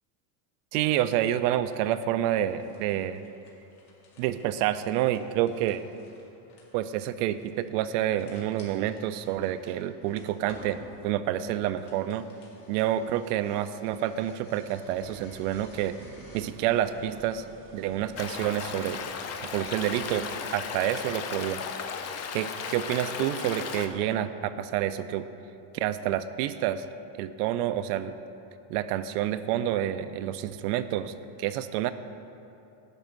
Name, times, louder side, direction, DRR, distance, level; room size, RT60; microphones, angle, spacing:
voice 1, 0.7-3.2 4.2-5.9 6.7-12.3 12.7-16.0 16.3-17.4 17.7-19.0 19.5-20.3 20.5-21.6 22.3-25.3 25.7-26.8 27.2-28.2 28.7-31.1 31.4-31.9, right 12 dB, 75° right, 11 dB, 0.5 m, -28 dB
sound 1, 2.5-16.4, left 2 dB, 90° left, 2.3 m, -55 dB
sound 2, 15.0-20.4, right 5 dB, 25° right, 0.5 m, -50 dB
Stream, 18.2-23.9, left 6 dB, 35° left, 0.5 m, -35 dB
10.5 x 4.0 x 7.5 m, 2.8 s
supercardioid pair, 135°, 47 cm